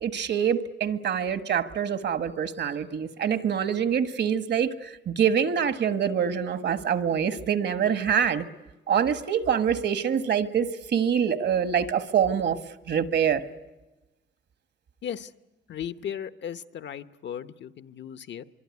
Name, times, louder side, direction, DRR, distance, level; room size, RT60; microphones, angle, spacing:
voice 1, 0.0-4.7 5.1-8.4 8.9-12.6 12.9-13.4, right 8 dB, 65° right, 11 dB, 1.5 m, -25 dB
voice 2, 15.7-18.4, left 9 dB, 70° left, 13 dB, 1.0 m, -36 dB
24.0 x 24.0 x 9.6 m, 1.1 s
cardioid pair, 120°, 19 cm